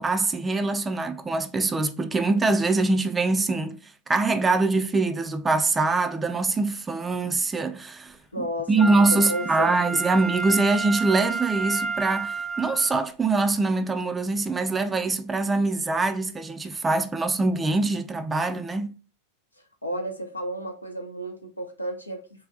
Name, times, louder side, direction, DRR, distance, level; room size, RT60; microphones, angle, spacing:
voice 1, 0.0-3.8 4.1-18.9, right 3 dB, 15° right, 0.3 m, -24 dB
voice 2, 8.3-10.2 19.8-22.2, equal, 85° left, 0.7 m, -33 dB
Wind instrument woodwind instrument, 8.8-13.0 13.6-13.7, right 4 dB, 15° left, 0.7 m, -30 dB
3.3 x 2.7 x 3.6 m
figure-of-eight pair, 90°, 0 cm